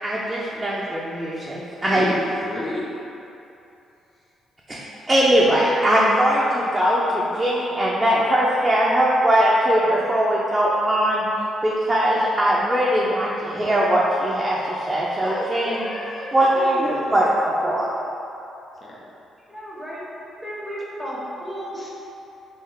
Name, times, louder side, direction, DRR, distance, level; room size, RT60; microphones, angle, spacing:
voice 1, 0.0-2.1 4.7-4.8 5.1-11.2 11.6-15.8 16.3-17.9, equal, 20° right, -6 dB, 0.6 m, -20 dB
voice 2, 1.8-2.9 15.2-17.4 18.8-19.0, left 1 dB, 35° left, -4 dB, 0.7 m, -32 dB
voice 3, 19.5-20.0 20.4-22.0, equal, 10° left, -7 dB, 1.4 m, -33 dB
3.6 x 2.6 x 4.5 m, 2.8 s
supercardioid pair, 55°, 0 cm